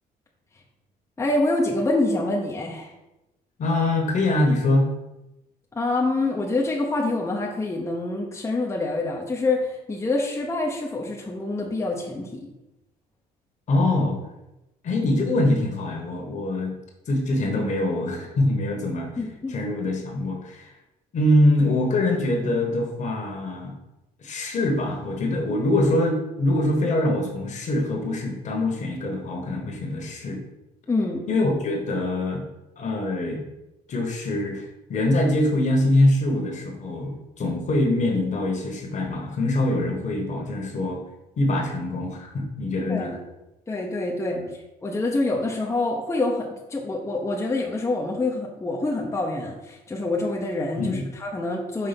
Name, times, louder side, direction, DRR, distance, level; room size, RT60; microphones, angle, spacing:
voice 1, 1.2-2.9 5.7-12.5 19.2-19.6 30.9-31.3 42.9-43.1 43.7-44.4 44.8-51.9, left 2 dB, 15° left, -2 dB, 0.8 m, -26 dB
voice 2, 3.6-4.9 13.7-14.2 14.8-16.7 17.1-19.1 19.5-20.7 21.1-23.7 24.2-30.4 31.3-32.4 32.8-33.4 33.9-41.0 41.4-43.2 44.4-44.5 50.8-51.1, left 1 dB, 45° left, 2 dB, 1.4 m, -24 dB
5.7 x 3.4 x 5.2 m, 0.95 s
cardioid pair, 110°, 17 cm